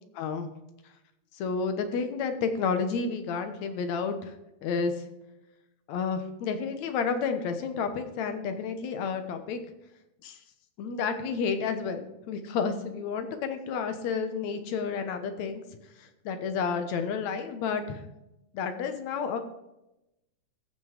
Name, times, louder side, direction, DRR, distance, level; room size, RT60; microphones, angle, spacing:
voice 1, 0.2-0.5 1.4-4.3 4.6-4.9 5.9-9.6 10.2-10.4 10.8-15.6 16.3-18.0 18.5-19.4, left 5 dB, 65° left, 8 dB, 2.2 m, -30 dB
15.0 x 6.2 x 5.0 m, 0.90 s
omnidirectional pair, 3.6 m